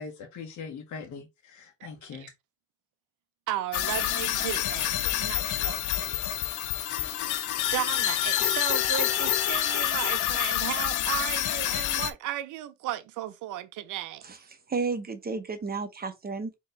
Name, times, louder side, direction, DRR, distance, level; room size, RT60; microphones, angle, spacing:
voice 1, 0.0-2.3, left 5 dB, 70° left, 1.2 m, -41 dB
voice 2, 3.5-6.2 7.7-14.3, right 13 dB, 90° right, 0.6 m, -35 dB
sound 1, 3.7-12.1, left 12 dB, 90° left, 0.7 m, -27 dB
voice 3, 14.7-16.6, right 4 dB, 30° right, 0.9 m, -32 dB
4.4 x 3.1 x 3.1 m
cardioid pair, 90°, 30 cm